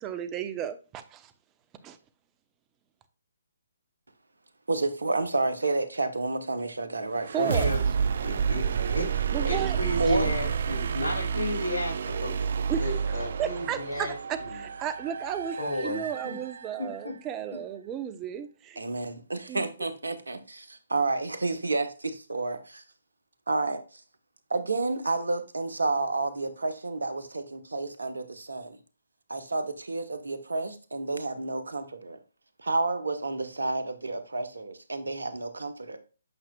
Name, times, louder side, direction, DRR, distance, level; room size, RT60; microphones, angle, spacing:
voice 1, 0.0-1.3 1.8-2.0 7.3-7.7 9.3-9.8 10.0-10.2 12.7-12.9 13.4-18.8 19.5-19.7, right 9 dB, 20° right, 0.8 m, -34 dB
voice 2, 4.7-7.8 9.4-9.5 10.0-10.4 18.8-22.8 23.5-23.8 24.5-28.8 29.3-32.2 32.6-36.0, right 3 dB, 75° right, 1.2 m, -30 dB
sound 1, 7.2-17.0, right 7 dB, 55° right, 0.4 m, -30 dB
voice 3, 7.4-7.8 8.2-9.1 9.5-12.3 12.8-14.1 15.6-16.3 16.8-17.1, left 1 dB, 80° left, 3.0 m, -33 dB
8.8 x 5.8 x 2.3 m
figure-of-eight pair, 135°, 0 cm